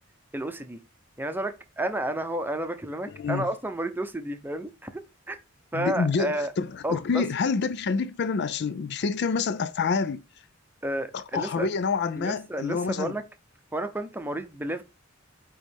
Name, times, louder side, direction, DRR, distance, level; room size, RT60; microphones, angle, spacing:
voice 1, 0.3-0.8 1.2-4.9 5.3-5.4 5.7-6.5 6.8-7.2 10.8-11.7 12.2-13.2 13.7-14.8, right 1 dB, 10° right, 0.7 m, -31 dB
voice 2, 3.1-3.5 5.7-10.2 11.1-13.2, left 5 dB, 60° left, 0.4 m, -27 dB
8.9 x 3.1 x 3.5 m
head